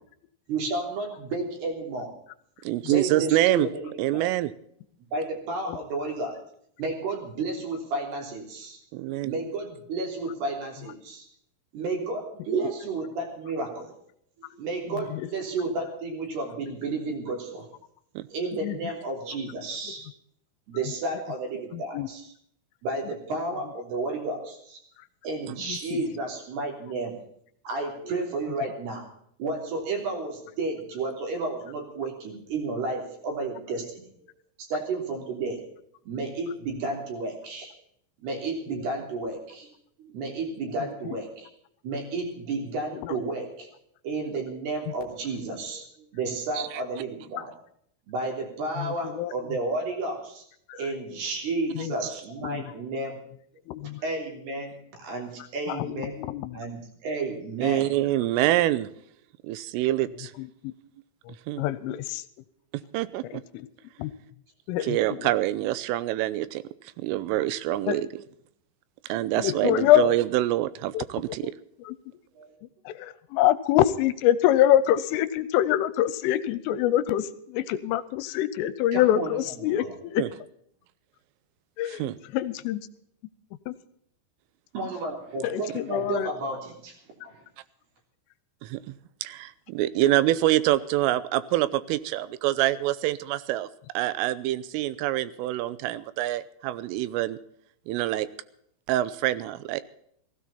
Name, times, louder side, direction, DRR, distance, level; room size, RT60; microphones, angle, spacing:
voice 1, 0.5-2.1 2.8-4.3 5.1-6.4 6.8-8.8 9.2-11.3 11.7-13.9 14.6-17.7 18.3-20.1 20.7-22.3 22.8-24.8 25.2-27.2 27.6-29.1 29.4-34.1 34.6-35.6 36.1-37.7 38.2-39.7 40.0-41.5 41.8-43.7 44.0-47.5 48.1-50.4 50.7-53.2 53.8-56.2 56.5-57.9 72.4-72.5 78.9-79.9 84.7-87.0 87.2-87.4, right 3 dB, 55° right, 1 dB, 5.1 m, -32 dB
voice 2, 2.6-3.7 4.0-4.5 8.9-9.3 18.2-18.3 25.5-25.6 46.6-46.7 57.6-58.9 59.4-60.3 61.5-61.6 62.9-63.4 64.8-66.6 67.0-68.1 69.1-71.5 80.2-80.3 81.9-82.2 88.6-88.9 89.2-93.7 93.9-97.4 97.9-98.3 98.9-99.8, right 15 dB, 85° right, 16 dB, 3.3 m, -26 dB
voice 3, 21.7-22.1 25.7-26.0 42.9-43.1 48.8-49.3 50.7-50.8 51.8-51.9 52.4-52.7 53.7-54.0 55.7-56.5 60.6-60.7 61.3-62.2 63.5-63.7 64.0-64.1 64.7-65.3 67.9-68.0 69.4-70.1 70.9-71.0 71.9-72.0 72.9-80.2 81.8-82.8 83.7-83.8 85.4-86.3, left 12 dB, 85° left, 15 dB, 3.2 m, -25 dB
16.5 x 16.0 x 4.2 m, 0.68 s
omnidirectional pair, 5.8 m